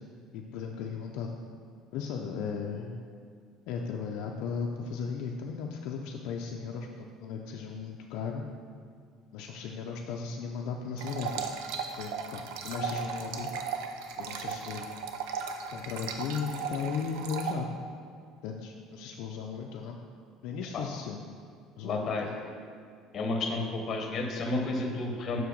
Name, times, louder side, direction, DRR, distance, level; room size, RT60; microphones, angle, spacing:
voice 1, 0.3-1.3 1.9-3.0 3.7-8.4 9.3-11.5 12.0-13.5 14.2-14.9 15.7-17.7 18.4-20.0 20.4-21.2 21.8-22.4, left 6 dB, 70° left, 1 dB, 0.5 m, -36 dB
sound 1, 11.0-17.5, right 6 dB, 85° right, 0.5 m, -36 dB
voice 2, 21.8-22.3 23.1-25.4, left 2 dB, 40° left, 2 dB, 1.0 m, -31 dB
6.2 x 4.7 x 5.2 m, 2.1 s
cardioid pair, 135°, 0 cm